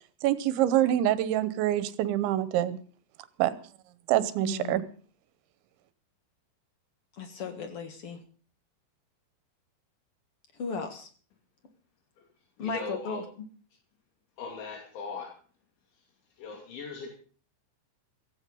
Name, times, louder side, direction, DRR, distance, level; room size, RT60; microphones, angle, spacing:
voice 1, 0.2-2.8 3.4-3.6 4.1-4.8, right 12 dB, 85° right, 14 dB, 3.3 m, -25 dB
voice 2, 4.4-4.9 7.1-8.2 10.6-11.1 12.6-13.2, left 4 dB, 60° left, 6 dB, 1.4 m, -35 dB
voice 3, 12.6-13.2 14.4-15.3 16.4-17.1, left 4 dB, 85° left, 1 dB, 5.1 m, -39 dB
16.0 x 15.5 x 5.5 m, 0.43 s
omnidirectional pair, 5.2 m